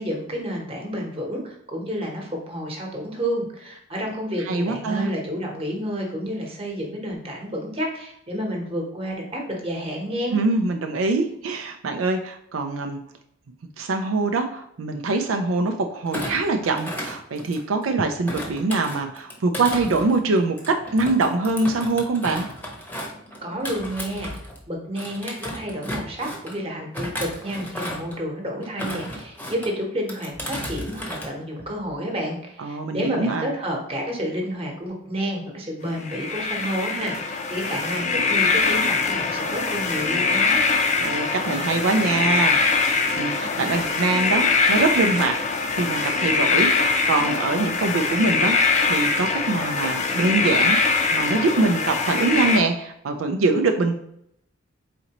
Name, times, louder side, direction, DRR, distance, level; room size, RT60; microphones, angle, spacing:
voice 1, 0.0-10.4 23.4-24.3 24.7-40.7, equal, 30° right, 0 dB, 1.0 m, -30 dB
voice 2, 4.4-5.1 10.3-13.0 13.8-22.5 32.6-33.5 41.0-45.4 45.7-54.0, right 3 dB, 80° right, 5 dB, 0.4 m, -24 dB
Thump thud, 16.1-17.8 18.3-24.6 24.9-26.6 26.9-28.2 28.6-29.7 30.1-31.3 31.6-31.9, equal, 10° left, 0.8 m, -34 dB
sound 1, 36.0-52.6, left 4 dB, 35° left, 0.5 m, -23 dB
4.2 x 3.8 x 2.9 m, 0.74 s
head